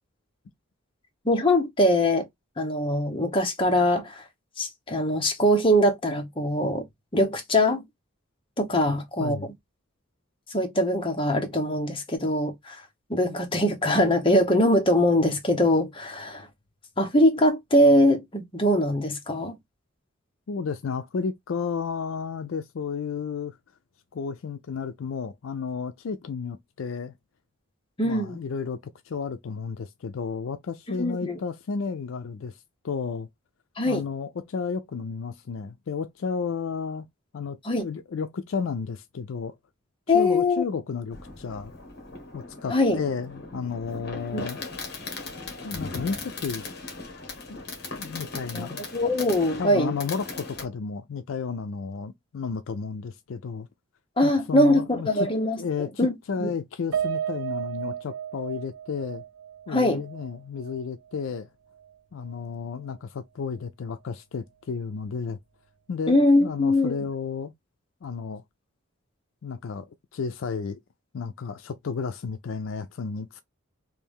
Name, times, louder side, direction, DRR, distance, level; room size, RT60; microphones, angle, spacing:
voice 1, 1.2-2.3 2.6-4.2 4.6-6.9 7.1-7.8 8.6-9.4 10.5-12.8 13.1-16.5 17.0-19.5 28.0-28.4 31.0-31.4 33.8-34.0 37.6-37.8 40.1-40.6 42.7-43.0 44.3-44.4 48.5-48.7 48.9-50.0 54.2-55.6 56.0-56.1 56.4-56.5 59.7-60.0 66.1-67.0, left 1 dB, 25° left, 0.8 m, -22 dB
voice 2, 9.2-9.5 20.5-23.6 24.1-27.1 28.0-32.6 32.8-33.3 33.8-37.1 37.3-39.6 40.1-41.7 42.3-44.6 45.6-46.7 47.5-47.6 47.9-48.9 49.6-53.7 54.2-55.3 55.6-59.2 59.7-61.5 62.1-65.4 65.9-67.5 68.0-68.4 69.4-70.8 71.1-73.4, left 5 dB, 65° left, 0.4 m, -32 dB
Fireworks, 41.1-50.6, left 3 dB, 50° left, 1.2 m, -38 dB
Piano, 56.9-61.4 61.8-61.9 62.3-62.4, right 9 dB, 80° right, 0.4 m, -34 dB
3.3 x 2.5 x 3.5 m
head